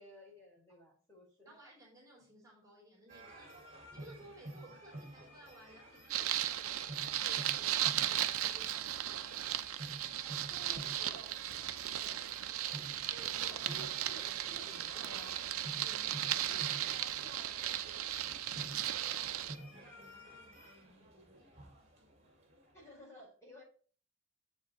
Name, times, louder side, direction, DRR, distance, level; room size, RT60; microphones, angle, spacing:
voice 1, 0.0-1.5 10.5-11.4 11.9-12.3 13.1-15.5 16.4-18.0 22.7-23.6, right 1 dB, 15° left, -3 dB, 4.3 m, -55 dB
voice 2, 1.5-9.6 15.8-16.6 19.1-21.9, right 1 dB, 15° right, -4 dB, 3.6 m, -59 dB
sound 1, 3.1-22.8, right 1 dB, 30° right, 2.4 m, -51 dB
sound 2, 6.1-19.6, right 12 dB, 85° right, 0.6 m, -36 dB
8.1 x 7.2 x 3.0 m, 0.42 s
head